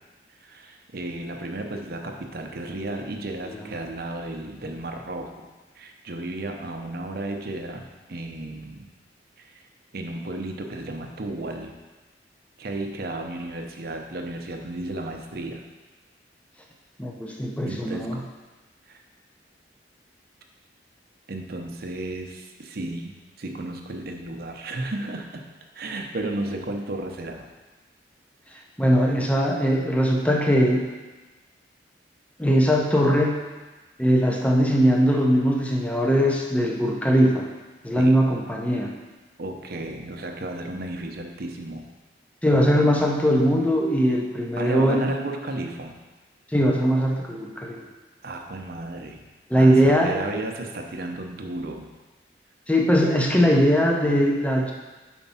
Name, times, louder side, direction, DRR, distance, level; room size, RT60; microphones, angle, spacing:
voice 1, 0.4-5.3 5.8-8.9 9.4-9.5 9.9-11.7 12.6-15.6 17.7-18.2 18.9-19.0 21.3-25.4 25.7-27.5 38.0-38.2 39.4-41.9 44.6-46.0 48.2-49.2 49.5-51.9, right 2 dB, 55° right, 3 dB, 0.7 m, -33 dB
voice 2, 17.0-18.2 28.8-30.8 32.4-33.4 34.0-37.5 37.8-38.9 42.4-45.1 46.5-47.8 49.5-50.2 52.7-54.7, equal, 10° left, 0 dB, 0.6 m, -20 dB
5.1 x 4.5 x 5.5 m, 1.2 s
head